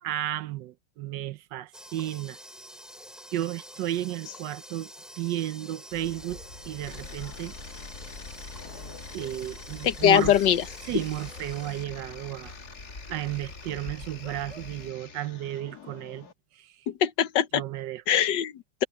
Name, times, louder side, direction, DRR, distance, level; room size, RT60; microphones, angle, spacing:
voice 1, 0.0-2.4 3.3-4.9 5.2-6.4 6.6-7.5 9.1-10.4 10.8-12.5 13.1-16.3 16.5-16.9 17.5-18.0, right 13 dB, 80° right, 1.4 m, -33 dB
sound 1, 1.7-11.9, equal, ahead, 4.9 m, -47 dB
sound 2, 5.9-14.9, left 2 dB, 40° left, 4.1 m, -45 dB
sound 3, 6.8-16.3, left 5 dB, 60° left, 2.1 m, -46 dB
voice 2, 9.8-10.6 16.9-17.6 18.1-18.8, left 10 dB, 80° left, 1.6 m, -22 dB
omnidirectional pair, 1.9 m